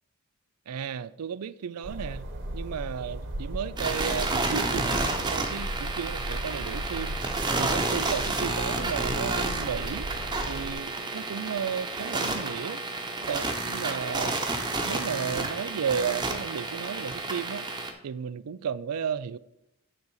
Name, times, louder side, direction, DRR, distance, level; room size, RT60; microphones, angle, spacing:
voice 1, 0.7-2.2 2.5-7.2 7.6-10.1 10.5-12.8 13.2-14.4 14.8-17.7 18.0-19.4, right 7 dB, 85° right, 0.4 m, -33 dB
sound 1, 1.8-10.7, right 1 dB, 55° right, 1.2 m, -36 dB
sound 2, 3.8-17.9, right 3 dB, 20° right, 1.0 m, -30 dB
9.8 x 4.0 x 6.4 m
head